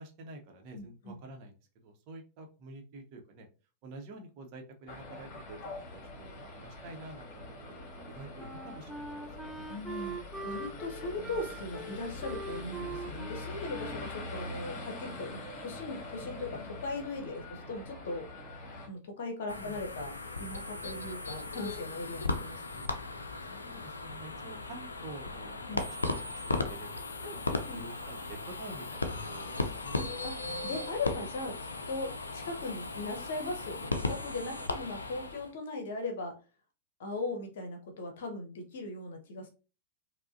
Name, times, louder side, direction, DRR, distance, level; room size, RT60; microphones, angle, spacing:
voice 1, 0.0-1.5 1.8-3.5 3.8-5.6 5.9-9.7 19.6-19.8 23.5-25.9 26.2-30.0, right 2 dB, 45° right, 3 dB, 0.8 m, -49 dB
voice 2, 0.7-1.2 9.7-18.3 18.9-23.0 25.7-25.9 27.2-27.8 30.0-30.4 30.6-36.4 37.0-39.5, left 2 dB, 60° left, 4 dB, 0.8 m, -39 dB
sound 1, 4.9-18.9, left 2 dB, 40° left, 1.2 m, -44 dB
Wind instrument woodwind instrument, 7.9-15.2, right 2 dB, ahead, 0.4 m, -43 dB
sound 2, 19.5-35.5, left 3 dB, 75° left, 0.4 m, -37 dB
4.6 x 2.1 x 2.5 m, 0.33 s
figure-of-eight pair, 90°, 0 cm